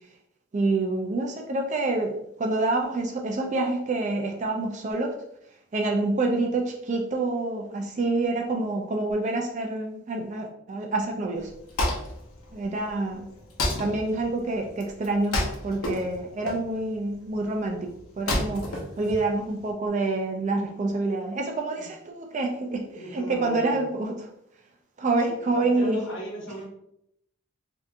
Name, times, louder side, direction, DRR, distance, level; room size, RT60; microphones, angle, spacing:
voice 1, 0.5-5.1 5.7-11.5 12.5-13.3 13.8-17.9 18.2-18.7 19.0-24.1 25.0-26.0, right 2 dB, 35° right, 2 dB, 0.3 m, -27 dB
Wood, 11.4-19.7, left 1 dB, 90° left, 0.8 m, -32 dB
voice 2, 22.8-23.8 25.3-26.7, equal, 65° left, -3 dB, 1.0 m, -38 dB
3.4 x 2.7 x 2.4 m, 0.76 s
head